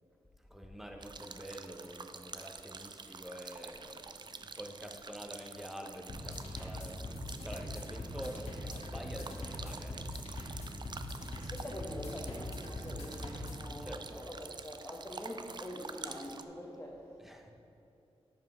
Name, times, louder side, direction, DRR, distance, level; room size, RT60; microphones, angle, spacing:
voice 1, 0.5-7.1 7.4-10.1 13.8-14.2 17.2-17.5, equal, ahead, 3 dB, 1.0 m, -47 dB
sound 1, 1.0-16.5, right 4 dB, 45° right, 0.4 m, -48 dB
sound 2, 6.1-13.7, left 1 dB, 80° left, 1.4 m, -42 dB
voice 2, 11.4-17.1, equal, 15° left, -3 dB, 1.1 m, -45 dB
10.5 x 5.7 x 3.8 m, 2.7 s
cardioid pair, 40°, 11 cm